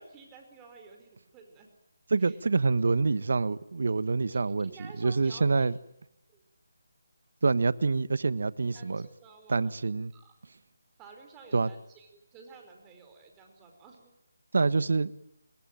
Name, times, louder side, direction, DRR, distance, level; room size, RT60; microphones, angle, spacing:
voice 1, 0.0-1.7 2.2-2.4 4.3-5.7 6.3-6.4 8.7-9.7 10.1-10.4 11.0-14.1, right 5 dB, 15° right, 5.0 m, -52 dB
voice 2, 2.1-5.7 7.4-9.1 9.5-10.1 11.5-11.7 14.5-15.1, right 4 dB, 65° right, 1.4 m, -26 dB
27.0 x 21.5 x 9.2 m
figure-of-eight pair, 165°, 0 cm